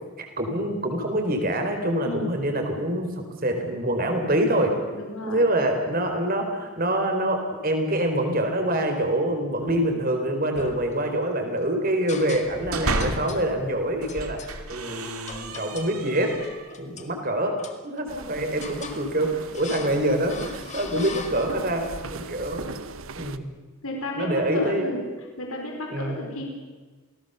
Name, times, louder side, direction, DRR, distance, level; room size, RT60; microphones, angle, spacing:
voice 1, 0.2-4.7 5.3-16.3 16.8-17.5 17.8-22.6 23.2-23.5 24.2-25.0 25.9-26.3, right 1 dB, 40° right, 4 dB, 4.4 m, -25 dB
voice 2, 4.9-5.5 23.8-25.0 25.4-26.5, left 1 dB, 75° left, 1 dB, 5.0 m, -32 dB
sound 1, 9.6-10.1 10.5-11.4 12.1-12.7 13.0-13.5 14.1-14.5 15.3-16.0 16.4-17.1 17.6-18.2 18.6-19.1 19.5-20.0 20.3-21.8, left 4 dB, 30° left, 1.9 m, -40 dB
sound 2, 12.3-13.5 14.0-16.8, right 2 dB, 85° right, 2.5 m, -32 dB
sound 3, 18.1-23.4, right 3 dB, 70° right, 1.1 m, -39 dB
28.5 x 19.0 x 7.0 m, 1.4 s
head